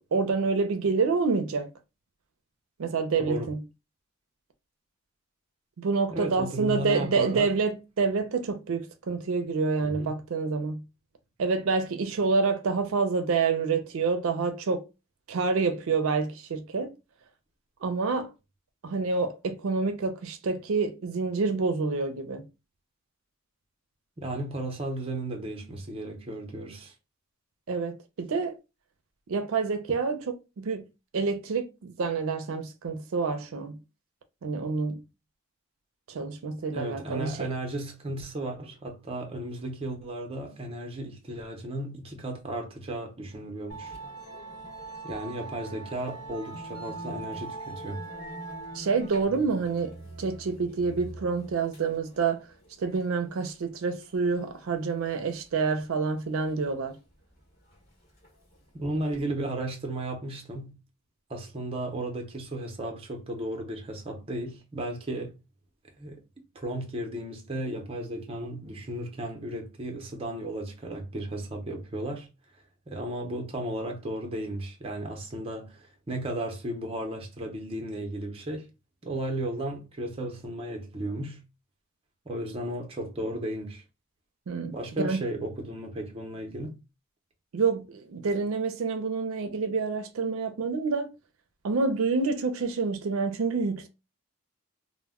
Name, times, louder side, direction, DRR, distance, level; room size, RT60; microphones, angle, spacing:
voice 1, 0.1-1.7 2.8-3.6 5.8-10.8 11.4-14.8 15.3-16.9 17.8-18.3 18.8-22.4 27.7-28.5 29.3-30.9 31.1-33.8 34.4-35.0 36.1-37.5 48.7-52.4 52.8-56.9 84.5-85.2 87.5-91.1 91.6-93.9, right 4 dB, 75° right, 0.4 m, -28 dB
voice 2, 6.1-7.5 9.8-10.2 24.2-26.9 36.7-43.9 45.0-48.0 58.7-60.8 61.3-65.4 66.0-66.2 66.5-72.3 72.9-78.7 79.0-81.4 82.3-83.8 84.7-86.8, right 1 dB, 25° right, 0.5 m, -34 dB
Musical instrument, 43.7-59.2, right 2 dB, 45° left, 1.0 m, -43 dB
2.1 x 2.1 x 3.4 m
head